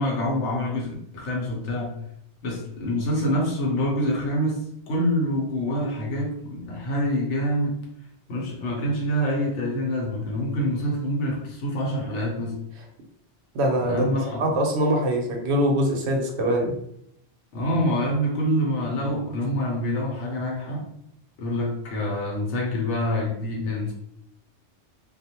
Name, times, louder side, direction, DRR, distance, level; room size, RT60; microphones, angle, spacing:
voice 1, 0.0-2.0 2.4-7.8 8.3-12.6 13.8-14.4 17.5-20.9 21.4-23.9, equal, 80° left, -1 dB, 1.0 m, -26 dB
voice 2, 13.5-16.8, equal, 70° right, 2 dB, 0.9 m, -23 dB
2.4 x 2.0 x 2.8 m, 0.72 s
omnidirectional pair, 1.2 m